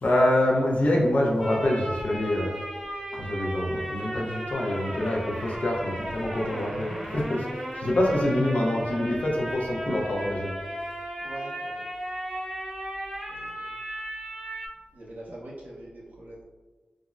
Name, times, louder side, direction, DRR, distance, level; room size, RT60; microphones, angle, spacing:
voice 1, 0.0-2.5 3.1-10.5, left 1 dB, 60° left, -2 dB, 0.7 m, -26 dB
sound 1, 1.4-14.7, right 1 dB, 10° right, 0.6 m, -35 dB
voice 2, 11.2-11.9 13.3-13.8 14.9-16.4, right 1 dB, 65° right, -6 dB, 0.9 m, -44 dB
3.5 x 2.1 x 2.4 m, 1.3 s
wide cardioid pair, 80°, 3 cm